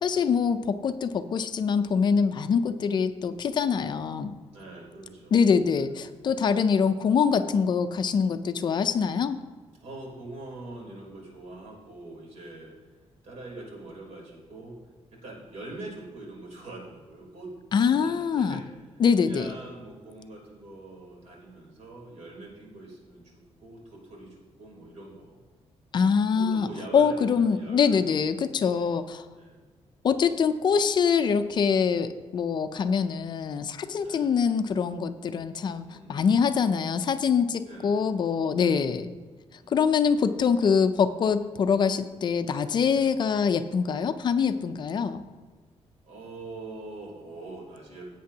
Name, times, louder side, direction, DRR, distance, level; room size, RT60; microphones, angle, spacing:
voice 1, 0.0-4.3 5.3-9.4 17.7-18.6 19.0-19.5 25.9-26.7 26.9-29.3 30.0-39.1 39.7-45.2, left 6 dB, 40° left, 10 dB, 0.5 m, -24 dB
voice 2, 4.5-5.4 5.8-5.9 9.8-12.7 13.2-14.8 15.1-17.5 17.8-18.6 19.2-25.4 26.3-28.3 28.6-28.9 29.3-29.6 34.0-34.3 35.8-36.2 37.7-38.0 38.5-38.8 39.5-39.7 42.9-43.1 46.0-48.0, right 2 dB, 85° right, -2 dB, 3.6 m, -44 dB
16.5 x 8.6 x 2.8 m, 1.4 s
wide cardioid pair, 175°, 11 cm